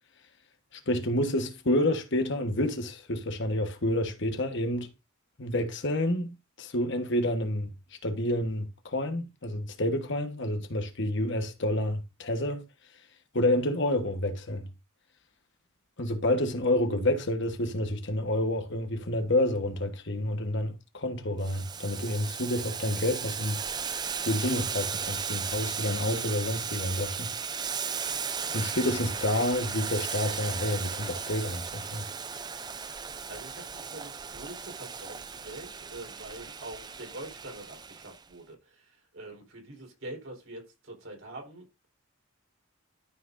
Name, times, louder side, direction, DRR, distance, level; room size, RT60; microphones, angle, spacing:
voice 1, 0.7-4.9 5.4-7.7 8.0-12.6 13.3-14.7 16.0-23.6 24.2-27.3 28.5-32.1, left 1 dB, 55° left, 1.3 m, -29 dB
Boiling, 21.4-38.2, right 6 dB, 20° right, 0.4 m, -36 dB
voice 2, 33.3-41.9, right 2 dB, 65° right, 4.3 m, -45 dB
13.0 x 6.0 x 2.6 m
head